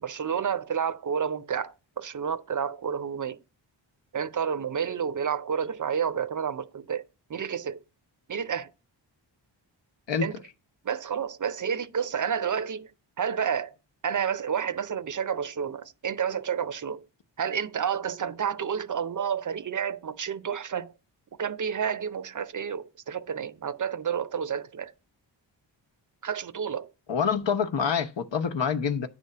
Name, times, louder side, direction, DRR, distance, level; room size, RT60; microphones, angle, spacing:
voice 1, 0.0-3.4 4.1-7.8 8.3-8.7 10.2-10.4 10.8-12.9 13.2-13.7 14.0-17.0 17.4-20.9 21.4-24.9 26.2-26.9, right 7 dB, 40° right, 0.6 m, -30 dB
voice 2, 27.1-29.1, left 6 dB, 65° left, 1.0 m, -26 dB
9.8 x 3.4 x 6.6 m
cardioid pair, 75°, 46 cm